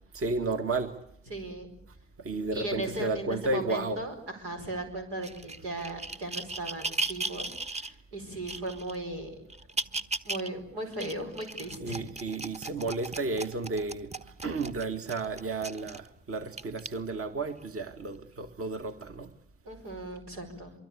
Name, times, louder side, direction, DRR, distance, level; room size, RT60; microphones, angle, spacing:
voice 1, 0.1-0.9 2.2-4.0 11.8-14.1 14.4-19.3, right 3 dB, 40° right, 7 dB, 2.1 m, -32 dB
voice 2, 1.3-1.7 2.5-7.5 7.8-9.4 10.2-12.0 19.6-20.7, right 1 dB, 85° right, 3 dB, 5.0 m, -37 dB
sound 1, 5.2-7.9 8.5-9.0 9.5-10.5 10.9-16.1 16.6-16.9 17.6-17.7, right 3 dB, 20° right, 1.2 m, -36 dB
24.0 x 23.5 x 8.7 m, 0.69 s
hypercardioid pair, 55°, 34 cm